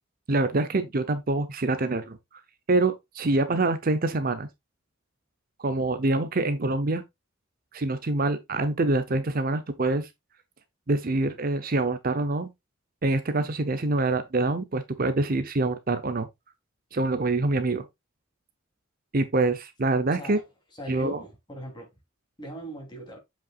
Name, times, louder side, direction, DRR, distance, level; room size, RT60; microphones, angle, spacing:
voice 1, 0.3-2.2 2.7-4.5 5.6-7.0 7.7-10.1 10.9-12.5 13.0-16.3 16.9-17.8 19.1-20.4 20.9-21.2, right 2 dB, 45° right, 0.7 m, -25 dB
voice 2, 20.1-20.4 20.8-21.9 22.4-23.2, right 1 dB, 25° left, 3.3 m, -39 dB
7.6 x 5.8 x 2.4 m
head